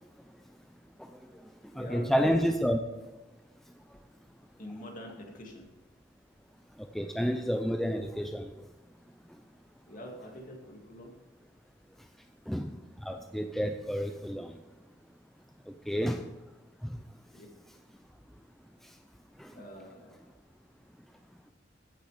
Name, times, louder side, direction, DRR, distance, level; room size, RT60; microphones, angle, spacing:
voice 1, 1.0-2.8 6.8-8.7 12.5-14.6 15.7-16.3 16.8-17.0 18.8-18.9 19.4-19.6, equal, ahead, 5 dB, 0.4 m, -31 dB
voice 2, 1.7-2.1 4.6-5.7 9.9-11.1 17.3-17.5 19.5-20.3, equal, 45° left, 1 dB, 2.2 m, -45 dB
15.0 x 6.7 x 5.0 m, 1.1 s
head